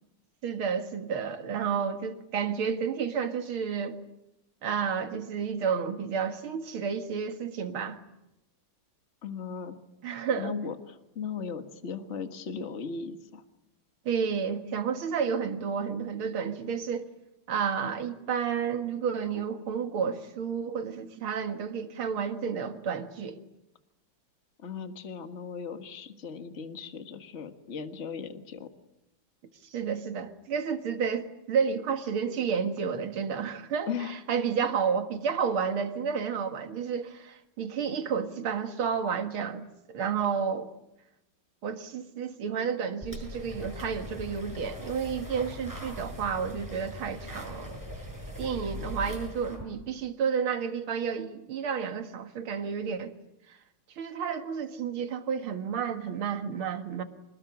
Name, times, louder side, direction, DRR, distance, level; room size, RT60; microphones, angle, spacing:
voice 1, 0.4-4.0 4.6-8.0 10.0-10.5 14.1-17.1 17.5-23.4 29.7-40.7 41.6-47.8 48.4-53.1 53.5-53.6 54.0-57.0, right 6 dB, 80° right, 2.6 m, -31 dB
voice 2, 9.2-9.8 10.4-13.4 24.6-28.7 33.9-34.1, left 6 dB, 35° left, 1.8 m, -37 dB
sound 1, 43.0-49.6, left 1 dB, 10° right, 6.2 m, -40 dB
27.0 x 20.0 x 9.7 m
omnidirectional pair, 2.3 m